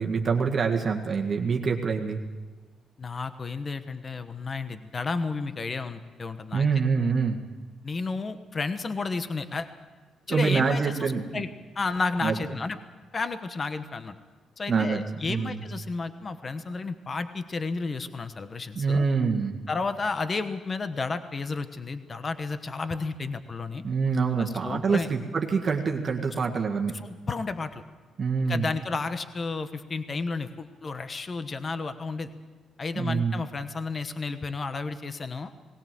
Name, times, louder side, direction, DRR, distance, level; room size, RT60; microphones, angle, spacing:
voice 1, 0.0-2.2 6.5-7.4 10.3-11.4 12.2-12.3 14.7-15.6 18.8-19.5 23.8-26.9 28.2-28.7 33.0-33.4, right 5 dB, 40° right, 2 dB, 1.8 m, -25 dB
voice 2, 3.0-6.7 7.8-9.7 10.3-11.5 11.7-12.8 13.1-14.1 14.6-19.1 19.7-23.8 24.4-25.1 26.9-27.8 28.4-32.3 32.8-35.5, left 4 dB, 35° left, 10 dB, 1.2 m, -32 dB
19.5 x 18.0 x 7.7 m, 1.4 s
cardioid pair, 90°, 0 cm